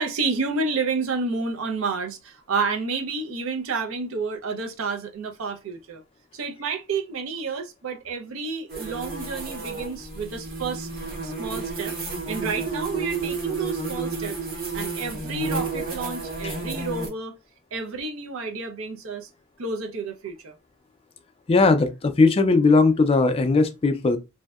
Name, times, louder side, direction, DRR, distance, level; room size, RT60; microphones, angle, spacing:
voice 1, 0.0-6.0 6.3-10.9 11.2-12.0 12.3-14.4 14.7-17.4 17.7-19.3 19.6-20.6, right 4 dB, 85° right, 0.5 m, -30 dB
sound 1, 8.7-17.1, right 3 dB, 45° right, 0.8 m, -31 dB
voice 2, 21.5-24.2, left 3 dB, 30° left, 0.3 m, -19 dB
2.6 x 2.1 x 2.3 m
head